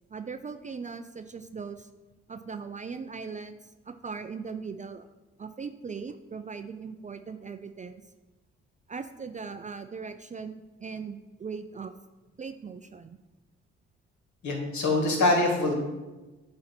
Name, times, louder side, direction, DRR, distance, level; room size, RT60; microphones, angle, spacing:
voice 1, 0.1-1.9 2.3-5.1 5.4-8.0 8.9-11.9 12.4-13.2, right 5 dB, 25° right, 9 dB, 0.4 m, -39 dB
voice 2, 14.4-15.8, left 2 dB, 60° left, 1 dB, 1.9 m, -24 dB
8.5 x 2.8 x 5.9 m, 1.1 s
hypercardioid pair, 50°, 32 cm